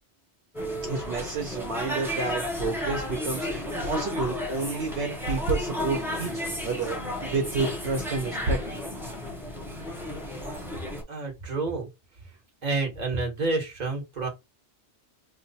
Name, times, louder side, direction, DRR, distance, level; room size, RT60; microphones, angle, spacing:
sound 1, 0.5-11.0, left 1 dB, ahead, 0.7 m, -33 dB
voice 1, 0.9-6.3 6.6-8.6, right 3 dB, 65° right, 1.0 m, -29 dB
voice 2, 11.1-11.9 12.6-14.3, right 3 dB, 40° right, 1.2 m, -29 dB
3.1 x 2.0 x 4.0 m
omnidirectional pair, 1.2 m